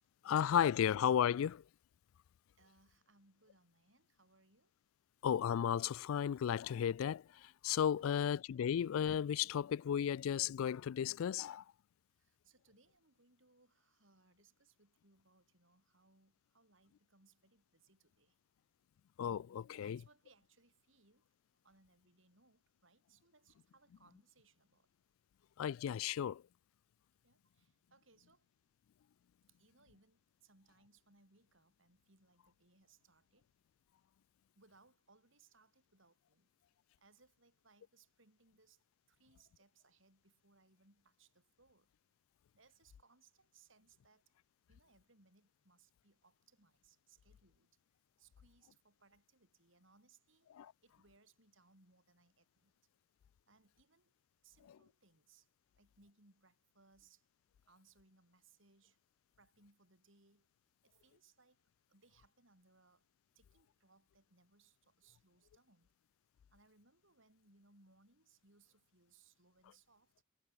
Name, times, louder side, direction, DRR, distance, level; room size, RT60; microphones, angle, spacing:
voice 1, 0.2-1.6 5.2-7.2 7.6-11.6 19.2-20.0 25.6-26.4 50.6-50.7, left 9 dB, 80° left, 0.3 m, -34 dB
voice 2, 2.5-4.7 8.0-8.1 12.1-18.4 19.6-21.3 21.6-24.9 27.2-28.5 29.5-33.5 34.6-36.5 37.0-41.9 42.5-44.3 44.7-47.8 48.2-50.5 50.8-52.7 53.5-54.1 54.4-55.5 55.8-57.3 57.7-59.0 59.4-60.5 60.8-63.1 63.4-65.9 66.5-70.1, right 3 dB, 65° right, 5.3 m, -70 dB
head